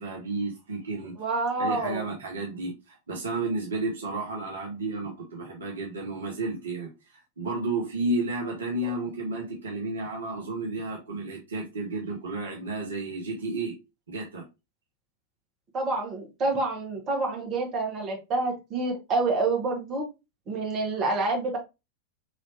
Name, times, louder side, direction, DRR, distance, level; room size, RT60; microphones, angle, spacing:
voice 1, 0.0-1.1 1.6-13.8 14.1-14.5, right 2 dB, 65° right, 0.8 m, -32 dB
voice 2, 1.2-2.0 15.7-20.1 20.5-21.6, right 3 dB, 30° right, 1.3 m, -28 dB
4.0 x 3.1 x 2.8 m
figure-of-eight pair, 90°, 0 cm